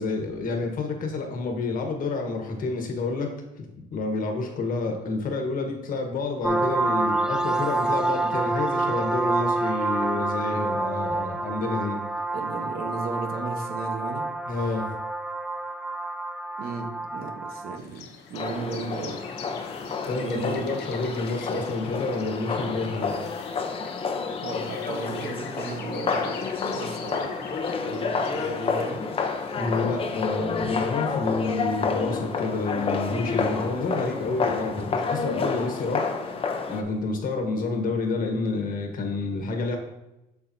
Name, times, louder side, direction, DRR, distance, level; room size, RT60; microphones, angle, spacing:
voice 1, 0.0-3.3 3.6-3.7 3.9-12.0 14.5-14.9 20.1-23.1 29.5-36.4 36.7-39.8, left 3 dB, 55° left, 3 dB, 1.4 m, -29 dB
sound 1, 6.4-17.8, right 2 dB, 5° right, 0.4 m, -28 dB
voice 2, 12.3-14.2 16.6-19.2 19.8-19.9 20.2-20.8 24.4-27.4 27.8-29.0, right 4 dB, 65° right, 4 dB, 1.1 m, -35 dB
sound 2, 17.8-29.5, left 6 dB, 85° left, 0.9 m, -44 dB
sound 3, 18.3-36.8, left 5 dB, 35° left, 0.8 m, -29 dB
7.2 x 6.6 x 2.8 m, 0.92 s
cardioid pair, 110°, 17 cm